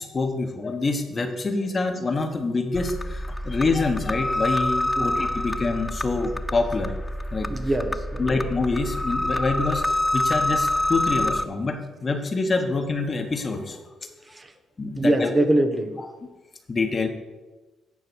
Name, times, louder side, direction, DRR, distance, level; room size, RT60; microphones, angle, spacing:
voice 1, 0.0-6.9 7.3-7.5 8.2-13.8 14.8-15.3 16.0-16.1 16.7-17.1, left 3 dB, 35° left, 6 dB, 1.2 m, -26 dB
sound 1, 2.7-11.5, left 1 dB, 10° left, 0.4 m, -27 dB
voice 2, 7.5-8.4 14.3-14.5 14.9-16.0, right 1 dB, 25° right, 7 dB, 0.9 m, -23 dB
9.6 x 4.7 x 6.2 m, 1.2 s
cardioid pair, 90°, 0 cm